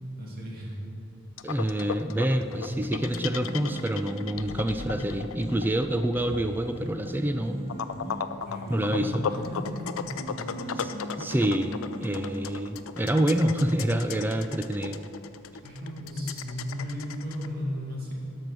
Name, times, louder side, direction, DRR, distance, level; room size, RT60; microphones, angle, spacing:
voice 1, 0.2-0.8 8.5-10.9 15.6-18.1, equal, 45° right, -3 dB, 2.2 m, -35 dB
sound 1, 1.4-17.5, left 7 dB, 75° left, 0.4 m, -36 dB
voice 2, 1.4-7.7 8.7-9.2 10.7-10.9 11.2-15.0, right 1 dB, 10° right, 7 dB, 0.3 m, -27 dB
sound 2, 2.4-12.5, equal, 30° left, 2.3 m, -40 dB
12.0 x 6.2 x 6.1 m, 2.8 s
head